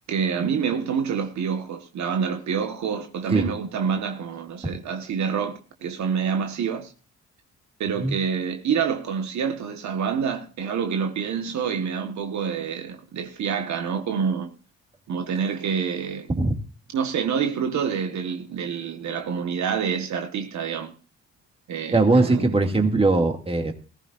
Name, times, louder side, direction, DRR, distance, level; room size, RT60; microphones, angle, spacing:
voice 1, 0.1-6.9 7.8-14.5 15.1-16.3 16.9-20.9 21.7-22.5, right 6 dB, 65° right, 1.6 m, -27 dB
voice 2, 21.9-23.7, right 3 dB, 20° right, 2.4 m, -20 dB
20.0 x 14.5 x 2.6 m
cardioid pair, 90°, 30 cm